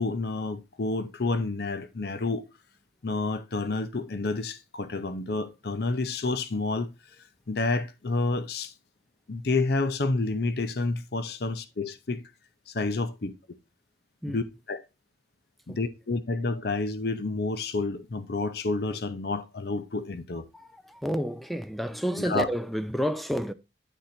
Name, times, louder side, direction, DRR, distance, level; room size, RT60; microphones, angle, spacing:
voice 1, 0.0-2.5 3.0-6.9 7.5-8.7 9.3-12.2 12.7-13.3 14.3-14.8 15.7-20.5 22.2-22.5, left 3 dB, 65° left, 0.7 m, -29 dB
voice 2, 20.5-23.5, equal, ahead, 0.4 m, -30 dB
10.0 x 3.9 x 4.2 m
head